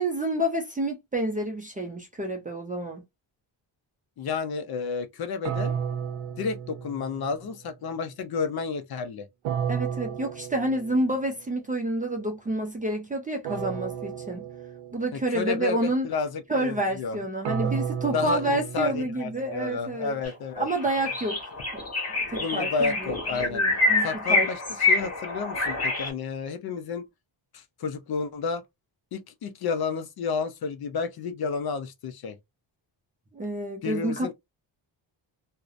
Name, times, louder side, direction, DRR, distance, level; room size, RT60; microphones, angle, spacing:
voice 1, 0.0-3.0 9.7-14.4 14.9-16.1 16.5-20.2 20.6-21.4 21.7-21.8 22.3-23.1 23.5-24.5 33.3-34.3, right 1 dB, 20° right, 0.4 m, -29 dB
voice 2, 4.2-5.8 6.4-9.3 15.3-17.2 17.6-17.7 18.1-20.7 22.4-23.6 24.0-27.0 27.5-28.6 29.1-32.4 33.8-34.3, left 5 dB, 55° left, 0.5 m, -31 dB
sound 1, 5.4-7.5 9.4-11.3 13.4-15.3 17.4-19.6, right 8 dB, 75° right, 0.6 m, -33 dB
sound 2, 20.2-20.3 20.7-26.1, left 2 dB, 30° left, 1.4 m, -26 dB
2.7 x 2.1 x 2.3 m
wide cardioid pair, 160°, 47 cm